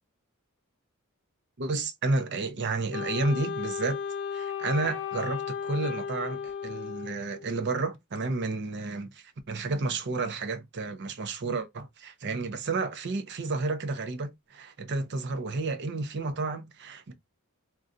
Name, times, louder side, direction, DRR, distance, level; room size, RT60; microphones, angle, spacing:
voice 1, 1.6-4.0 4.3-17.1, right 3 dB, 50° right, 0.6 m, -31 dB
Wind instrument woodwind instrument, 2.9-7.5, left 7 dB, 55° left, 0.4 m, -35 dB
2.6 x 2.3 x 3.5 m
head